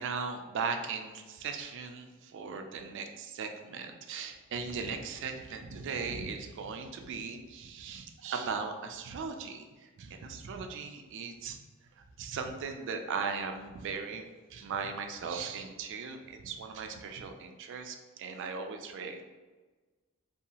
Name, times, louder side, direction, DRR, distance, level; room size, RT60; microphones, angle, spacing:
voice 1, 0.0-11.6 12.2-19.2, right 5 dB, 60° right, 5 dB, 0.3 m, -38 dB
2.7 x 2.3 x 2.8 m, 1.3 s
head